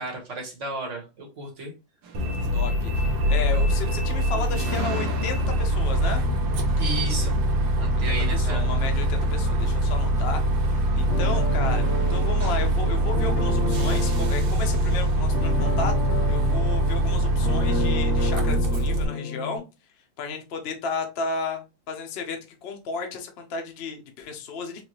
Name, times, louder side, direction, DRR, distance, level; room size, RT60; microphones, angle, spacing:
voice 1, 0.0-1.7 6.8-8.7, right 2 dB, 40° right, 1 dB, 1.2 m, -33 dB
sound 1, 2.0-15.9, right 5 dB, 65° right, 1.4 m, -42 dB
Bus, 2.1-19.0, right 1 dB, 85° right, 1.8 m, -23 dB
voice 2, 2.5-6.2 7.9-8.0 8.3-15.9 16.3-19.6 20.2-24.8, left 4 dB, 85° left, 4 dB, 0.5 m, -33 dB
sound 2, 11.1-19.6, left 4 dB, 40° left, 1.3 m, -31 dB
4.8 x 2.4 x 3.0 m, 0.28 s
omnidirectional pair, 2.3 m